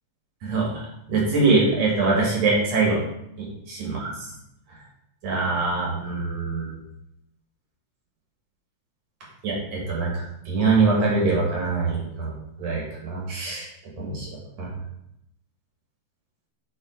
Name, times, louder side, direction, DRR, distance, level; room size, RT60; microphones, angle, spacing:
voice 1, 0.4-0.7 1.1-3.0 3.4-3.5 3.8-4.1 5.2-6.8 9.4-12.3 12.6-13.7 14.0-14.3 14.6-14.7, right 3 dB, 60° right, -3 dB, 2.6 m, -23 dB
7.9 x 4.0 x 3.7 m, 0.80 s
omnidirectional pair, 3.5 m